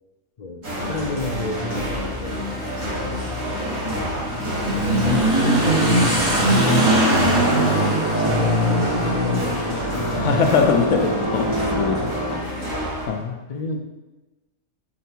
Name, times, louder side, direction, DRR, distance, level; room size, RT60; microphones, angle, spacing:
voice 1, 0.4-2.5 2.8-3.1 4.3-4.5 4.8-7.0 7.9-10.1 13.5-13.9, left 3 dB, 60° left, 2 dB, 0.4 m, -32 dB
sound 1, 0.6-13.1, equal, 90° right, 2.4 m, -30 dB
Motorcycle / Accelerating revving vroom, 0.8-13.1, right 1 dB, 55° right, 2.6 m, -23 dB
sound 2, 6.2-12.4, right 1 dB, 20° left, 1.7 m, -27 dB
voice 2, 10.1-12.1 12.4-12.7 13.1-13.4, left 6 dB, 75° left, 5 dB, 1.0 m, -22 dB
8.4 x 3.3 x 4.5 m, 1.1 s
omnidirectional pair, 1.3 m